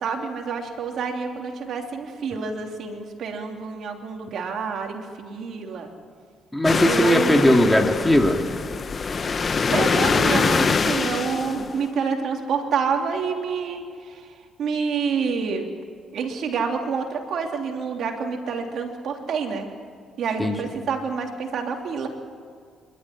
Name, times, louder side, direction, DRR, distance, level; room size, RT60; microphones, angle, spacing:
voice 1, 0.0-5.9 6.8-7.5 9.7-14.3 14.6-15.7 16.1-19.7 20.2-22.1, right 5 dB, 65° right, 2 dB, 3.2 m, -28 dB
voice 2, 6.5-8.4 20.4-20.5, left 1 dB, 10° left, 3 dB, 2.3 m, -18 dB
sound 1, 6.6-11.8, left 5 dB, 40° left, 1.1 m, -24 dB
26.5 x 13.0 x 10.0 m, 2.1 s
cardioid pair, 90°, 0 cm